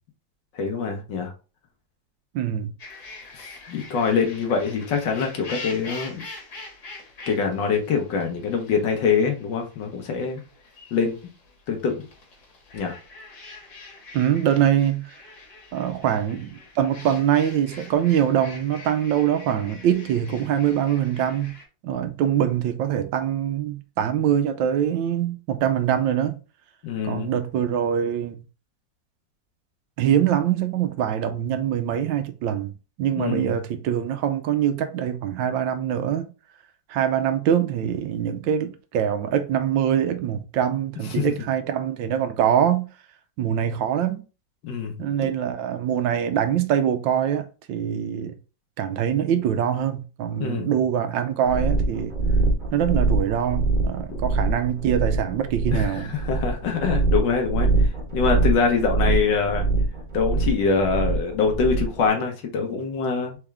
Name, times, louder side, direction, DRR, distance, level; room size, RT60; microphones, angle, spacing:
voice 1, 0.5-1.3 3.3-6.3 7.3-10.4 10.9-11.1 11.7-12.1 12.7-13.0 26.8-27.3 33.2-33.6 41.1-41.3 44.6-45.3 50.4-50.8 55.7-59.7 60.1-63.4, left 5 dB, 75° left, 1.7 m, -24 dB
voice 2, 2.3-2.7 14.1-15.1 15.7-21.6 21.8-26.4 27.0-28.4 30.0-32.7 33.0-36.3 36.9-42.9 43.4-44.2 45.0-48.4 48.8-52.2 52.7-56.1, right 9 dB, 80° right, 1.3 m, -23 dB
sound 1, 2.8-21.6, left 3 dB, 55° left, 1.9 m, -44 dB
sound 2, 51.5-62.0, right 2 dB, 30° right, 1.1 m, -23 dB
4.3 x 3.6 x 3.4 m
omnidirectional pair, 2.0 m